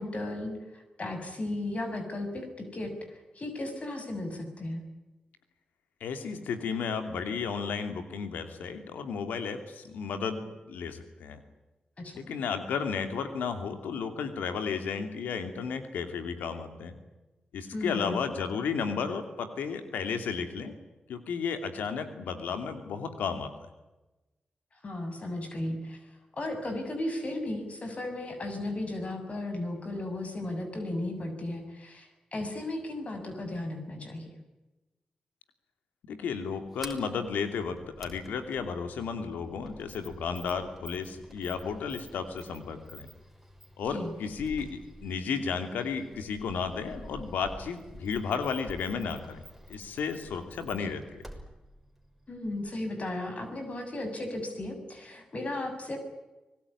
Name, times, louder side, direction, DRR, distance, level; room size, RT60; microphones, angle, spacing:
voice 1, 0.0-4.8 12.0-12.2 17.7-18.2 24.7-34.2 43.9-44.1 50.7-50.8 52.3-56.0, left 1 dB, 50° left, 6 dB, 6.8 m, -35 dB
voice 2, 6.0-11.4 12.1-17.0 17.5-20.7 21.1-23.5 36.1-43.1 43.8-49.4 49.7-51.2, left 6 dB, 90° left, 8 dB, 2.7 m, -33 dB
Sliding door, 36.5-52.8, equal, ahead, 6.1 m, -49 dB
25.0 x 18.5 x 9.8 m, 1.1 s
supercardioid pair, 45°, 3 cm